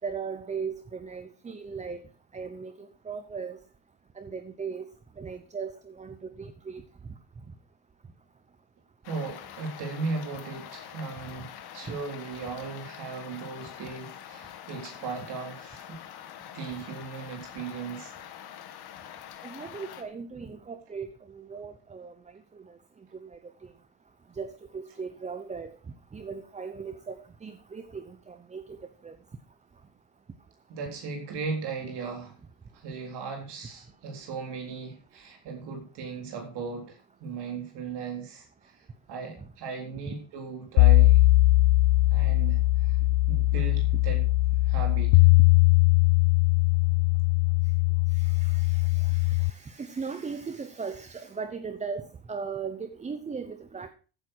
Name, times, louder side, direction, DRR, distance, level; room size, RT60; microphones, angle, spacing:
voice 1, 0.0-2.1 2.3-3.6 4.2-4.9 5.2-6.8 19.4-22.8 23.1-23.7 24.3-25.8 26.1-29.2 39.4-39.5 40.0-40.1 48.1-53.9, right 5 dB, 15° right, 10 dB, 0.7 m, -38 dB
sound 1, 9.0-20.0, left 10 dB, 55° left, 2.0 m, -45 dB
voice 2, 9.0-16.0 16.5-18.1 30.7-32.4 32.7-41.2 42.1-44.2 44.6-45.3, right 4 dB, 55° right, 2 dB, 3.9 m, -37 dB
sound 2, 40.8-49.5, left 20 dB, 80° left, 0.6 m, -21 dB
14.5 x 9.6 x 4.5 m, 0.36 s
cardioid pair, 150°, 46 cm